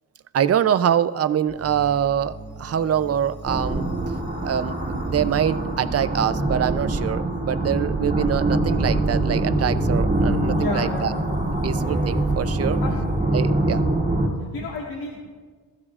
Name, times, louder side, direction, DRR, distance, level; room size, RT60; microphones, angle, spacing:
voice 1, 0.3-3.9 4.4-11.1 11.6-12.8 13.3-13.8, right 9 dB, 45° right, 13 dB, 0.5 m, -24 dB
sound 1, 1.5-13.3, equal, 25° left, 4.4 m, -35 dB
sound 2, 3.5-14.3, right 2 dB, 25° right, 2.1 m, -24 dB
voice 2, 10.6-11.2 12.8-12.9 14.3-15.3, left 4 dB, 85° left, -2 dB, 1.8 m, -31 dB
20.5 x 15.0 x 2.4 m, 1.5 s
wide cardioid pair, 135°, 34 cm